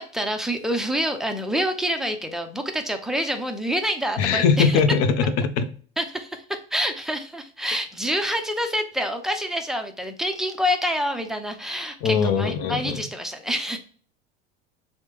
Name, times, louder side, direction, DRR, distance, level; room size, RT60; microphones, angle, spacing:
voice 1, 0.0-4.8 6.0-13.8, equal, ahead, 0.4 m, -27 dB
voice 2, 4.2-5.7 12.0-13.0, left 6 dB, 55° left, 0.6 m, -21 dB
3.1 x 2.0 x 3.2 m
hypercardioid pair, 90°, 30 cm